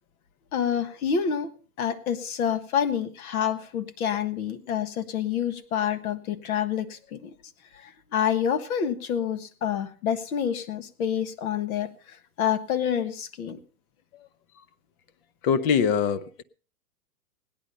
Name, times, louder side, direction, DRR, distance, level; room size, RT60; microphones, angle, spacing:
voice 1, 0.5-1.5 1.8-7.3 7.7-13.6, left 8 dB, 60° left, 1.5 m, -28 dB
voice 2, 15.4-16.4, left 7 dB, 40° left, 0.8 m, -23 dB
17.0 x 10.5 x 5.4 m
hypercardioid pair, 135°, 49 cm